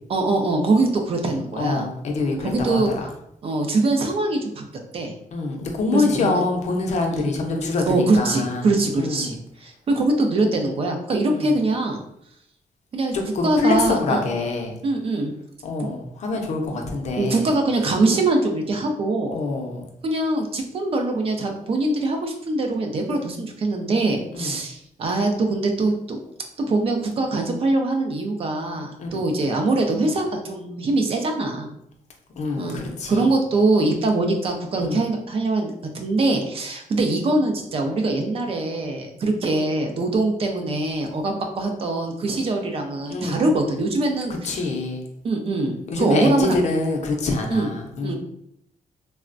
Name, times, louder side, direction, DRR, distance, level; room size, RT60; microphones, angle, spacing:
voice 1, 0.1-1.9 2.4-2.9 3.4-4.6 4.9-5.1 5.9-6.4 7.1-7.3 7.9-12.0 12.9-13.1 13.4-14.3 14.8-15.3 17.2-19.4 20.0-26.2 26.7-31.7 32.6-44.6 45.2-46.5 47.5-47.7 48.0-48.1, right 2 dB, 45° right, 3 dB, 0.4 m, -23 dB
voice 2, 1.6-3.1 5.3-9.4 11.3-11.5 13.1-14.7 15.6-17.5 19.3-19.9 24.3-24.6 29.0-29.2 32.3-33.2 34.8-35.0 43.1-43.4 44.4-45.0 45.9-48.1, left 3 dB, 55° left, 2 dB, 0.5 m, -25 dB
3.3 x 2.1 x 2.4 m, 0.73 s
wide cardioid pair, 170°, 14 cm